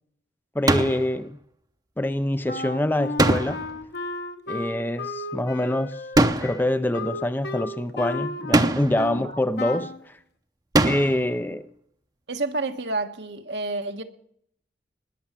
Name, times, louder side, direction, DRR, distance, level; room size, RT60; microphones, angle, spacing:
voice 1, 0.5-1.4 2.0-3.6 4.5-6.0 6.4-10.2 10.8-11.7, left 1 dB, 10° left, 0.5 m, -25 dB
sound 1, 0.7-1.1 3.2-3.8 6.1-6.7 8.5-9.1 10.7-11.3, right 2 dB, 20° right, 0.7 m, -21 dB
Wind instrument woodwind instrument, 2.5-9.2 9.6-10.0, left 2 dB, 65° left, 1.2 m, -34 dB
voice 2, 12.3-14.0, right 2 dB, 75° right, 1.3 m, -29 dB
20.0 x 7.0 x 7.5 m
head